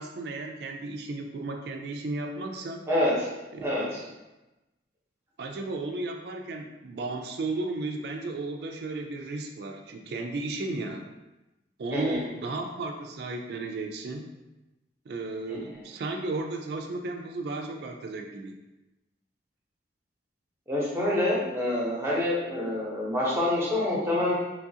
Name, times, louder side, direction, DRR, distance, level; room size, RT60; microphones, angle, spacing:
voice 1, 0.0-2.8 3.5-4.0 5.4-11.1 11.8-14.3 15.1-18.6, right 2 dB, 60° right, 3 dB, 0.3 m, -34 dB
voice 2, 3.6-4.0 11.9-12.2 15.5-15.6 20.7-24.3, left 1 dB, 15° right, -7 dB, 0.8 m, -26 dB
3.0 x 2.4 x 2.7 m, 1.0 s
head